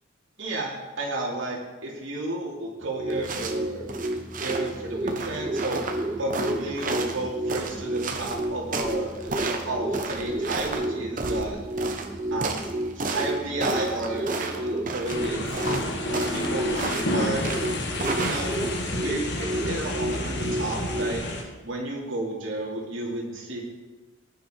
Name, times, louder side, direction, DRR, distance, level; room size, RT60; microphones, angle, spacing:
voice 1, 0.4-3.8 4.4-5.8 6.2-11.6 12.3-12.7 13.1-15.9 16.3-16.9 17.1-17.4 18.2-18.6 19.0-21.2 21.6-23.6, right 2 dB, 70° right, -2 dB, 3.0 m, -32 dB
sound 1, 2.7-21.1, right 1 dB, 20° right, 0.7 m, -31 dB
sound 2, 3.1-18.9, right 3 dB, 40° right, 1.1 m, -33 dB
sound 3, 15.1-21.4, left 1 dB, 55° left, 1.7 m, -30 dB
14.5 x 9.6 x 4.6 m, 1.2 s
head